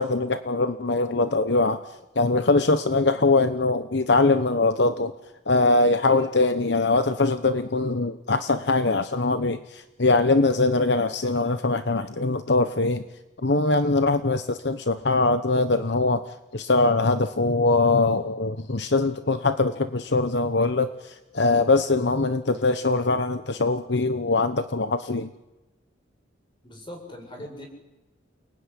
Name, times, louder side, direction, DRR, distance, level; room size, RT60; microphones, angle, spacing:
voice 1, 0.0-1.8 2.2-5.1 5.5-13.0 13.4-25.3, left 3 dB, 65° left, 10 dB, 1.0 m, -22 dB
voice 2, 26.6-27.7, left 1 dB, 25° left, 3 dB, 7.6 m, -40 dB
29.0 x 20.0 x 10.0 m, 1.1 s
head